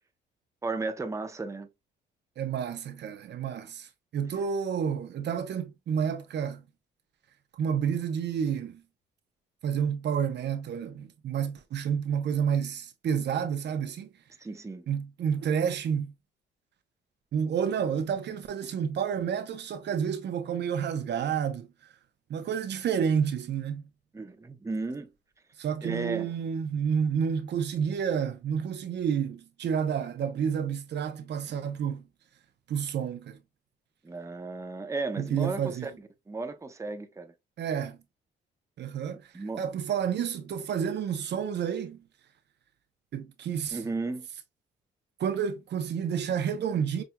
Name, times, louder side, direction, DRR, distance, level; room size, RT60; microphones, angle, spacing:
voice 1, 0.6-1.7 14.4-14.9 24.1-25.1 25.8-26.3 34.0-35.9 36.3-37.3 39.3-39.6 43.7-44.3, right 3 dB, 15° right, 0.7 m, -34 dB
voice 2, 2.4-6.6 7.5-8.8 9.6-14.1 14.9-16.1 17.3-21.7 22.3-23.8 25.6-32.0 32.7-33.4 35.2-35.9 37.6-38.0 38.8-42.0 43.1-43.8 45.2-47.0, right 7 dB, 60° right, 0.7 m, -30 dB
5.7 x 2.5 x 2.2 m
cardioid pair, 90°, 20 cm